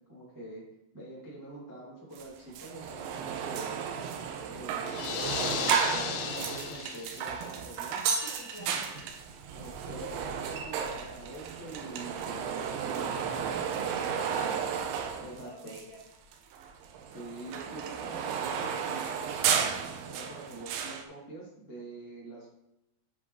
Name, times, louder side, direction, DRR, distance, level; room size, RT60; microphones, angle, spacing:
voice 1, 0.1-0.6 0.9-3.8 4.4-5.1 5.5-8.0 8.6-8.8 9.5-13.4 15.2-15.8 17.1-22.5, right 2 dB, 30° right, -6 dB, 0.3 m, -45 dB
sound 1, 2.2-2.3 2.5-16.0 16.3-21.0, right 7 dB, 85° right, 3.0 m, -33 dB
sound 2, 4.9-7.4, left 10 dB, 85° left, 2.4 m, -35 dB
voice 2, 8.2-8.9 13.7-14.7 15.2-16.0, equal, 70° left, -6 dB, 1.6 m, -48 dB
8.4 x 7.7 x 3.1 m, 0.86 s
omnidirectional pair, 5.4 m